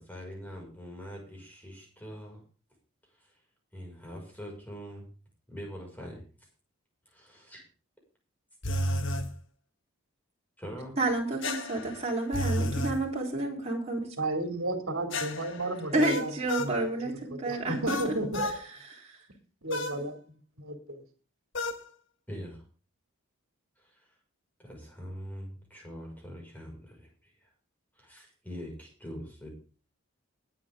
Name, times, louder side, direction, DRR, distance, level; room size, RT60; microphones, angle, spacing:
voice 1, 0.0-2.4 3.1-3.4 3.7-5.1 5.5-6.2 7.1-7.6 10.6-11.0 22.3-22.6 23.8-24.2 24.6-27.5 27.9-29.5, equal, 10° left, 0 dB, 5.7 m, -43 dB
sound 1, 8.6-9.3 11.4-13.0 15.1-16.8 17.9-18.6 19.7-20.0 21.5-21.8, left 1 dB, 55° left, 1.5 m, -32 dB
voice 2, 11.0-14.1 15.9-18.5 18.9-19.1, right 2 dB, 30° right, -2 dB, 3.8 m, -30 dB
voice 3, 14.2-16.3 16.6-18.4 19.6-21.0, right 1 dB, 65° right, 4 dB, 2.7 m, -33 dB
21.0 x 8.8 x 3.7 m, 0.38 s
head